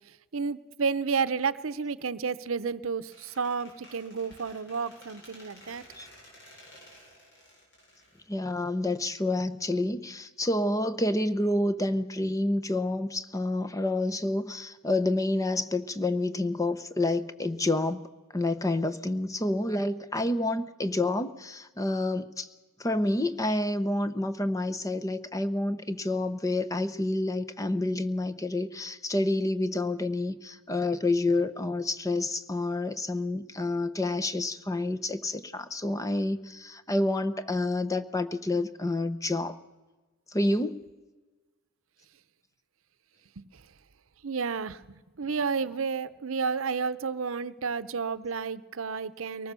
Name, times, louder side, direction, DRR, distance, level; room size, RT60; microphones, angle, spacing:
voice 1, 0.3-5.8 43.4-43.6 44.2-49.5, right 5 dB, 80° right, 15 dB, 0.7 m, -31 dB
Squeak, 3.1-8.9, left 1 dB, 60° left, 7.8 m, -53 dB
voice 2, 8.3-18.0 18.3-22.5 22.8-39.6 40.3-40.9, left 2 dB, 15° left, 10 dB, 0.8 m, -28 dB
23.0 x 19.0 x 6.9 m, 1.2 s
head